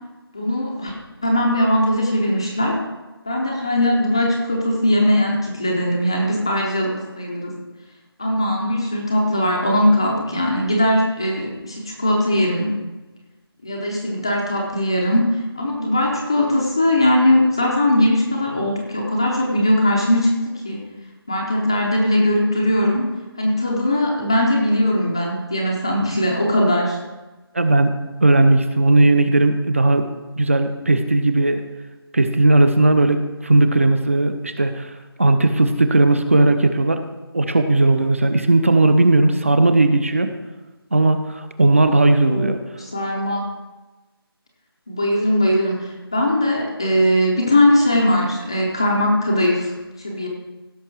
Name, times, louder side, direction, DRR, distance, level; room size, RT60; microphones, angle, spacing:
voice 1, 0.3-1.0 1.2-2.8 3.2-7.5 8.2-12.7 13.6-20.8 21.3-23.1 23.4-27.0 42.3-43.4 44.9-50.3, left 1 dB, 10° left, -1 dB, 0.6 m, -20 dB
voice 2, 27.5-27.9 28.2-30.1 30.4-31.6 32.1-34.9 35.2-37.0 37.3-40.3 40.9-42.6, right 2 dB, 30° right, 9 dB, 0.7 m, -16 dB
16.5 x 6.6 x 4.6 m, 1.1 s
figure-of-eight pair, 175°, 13 cm